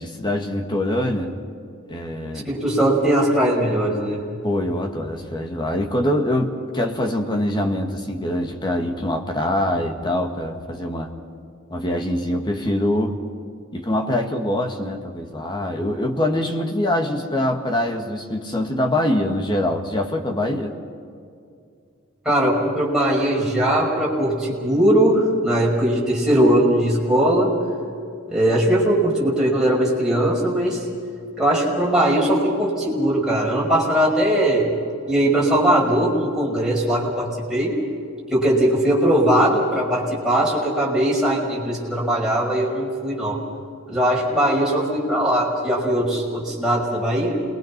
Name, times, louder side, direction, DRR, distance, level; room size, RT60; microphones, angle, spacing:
voice 1, 0.0-1.3 1.9-2.5 4.4-11.1 11.7-13.2 13.7-20.7, left 1 dB, 20° left, 2 dB, 1.9 m, -24 dB
voice 2, 2.5-4.2 22.2-27.5 28.3-30.9 31.4-34.7 35.1-37.8 38.3-43.4 43.9-47.4, right 1 dB, 5° right, -5 dB, 5.6 m, -20 dB
28.0 x 22.0 x 6.0 m, 2.4 s
head